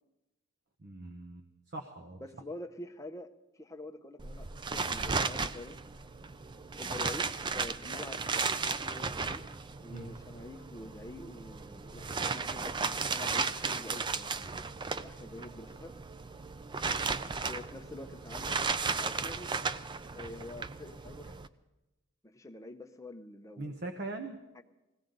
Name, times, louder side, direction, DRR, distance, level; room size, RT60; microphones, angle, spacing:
voice 1, 0.8-2.2 9.9-10.1 23.6-24.4, right 2 dB, 50° right, 6 dB, 0.9 m, -41 dB
voice 2, 2.2-5.8 6.8-9.4 9.8-14.6 14.9-15.9 17.5-19.5 20.1-21.4 22.2-23.8 24.6-24.7, left 2 dB, 15° left, 5 dB, 0.7 m, -47 dB
sound 1, 4.2-21.5, right 4 dB, 20° right, 0.4 m, -35 dB
20.5 x 16.5 x 3.9 m, 1.0 s
head